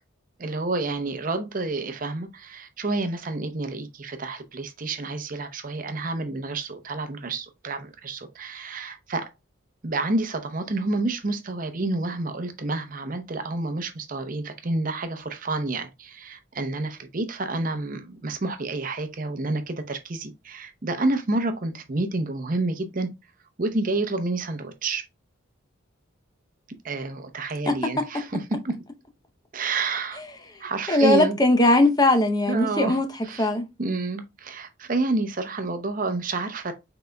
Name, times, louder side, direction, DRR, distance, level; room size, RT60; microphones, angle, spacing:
voice 1, 0.4-9.3 9.8-23.1 23.6-25.1 26.8-28.8 29.5-30.2 30.6-31.4 32.5-33.5 33.8-36.7, right 2 dB, 40° right, 0.7 m, -29 dB
voice 2, 30.9-33.1 33.4-33.7, left 1 dB, 20° left, 0.6 m, -19 dB
5.9 x 3.9 x 2.2 m
head